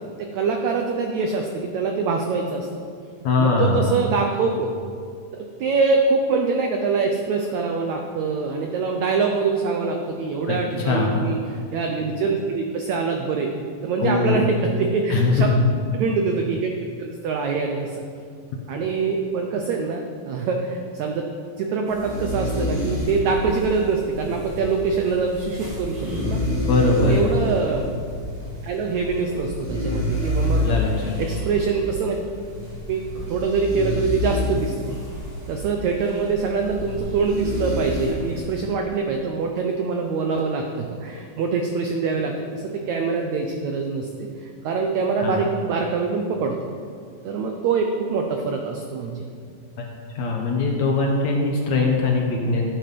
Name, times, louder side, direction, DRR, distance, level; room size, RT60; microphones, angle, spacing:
voice 1, 0.2-2.9 3.4-4.7 5.3-13.5 13.8-15.5 16.0-16.7 17.0-18.0 18.7-21.3 21.6-26.4 27.0-27.9 28.6-30.8 31.2-32.2 32.9-33.0 33.3-34.9 35.5-46.5 47.2-49.2, right 4 dB, 80° right, 3 dB, 1.6 m, -24 dB
voice 2, 3.2-3.9 10.5-11.2 14.0-14.5 15.1-15.7 26.7-27.3 30.6-31.2 45.2-45.4 50.2-52.7, left 3 dB, 65° left, 0 dB, 1.9 m, -21 dB
sound 1, 21.9-38.6, left 1 dB, 35° right, 4.1 m, -28 dB
13.5 x 8.7 x 5.3 m, 2.2 s
omnidirectional pair, 4.3 m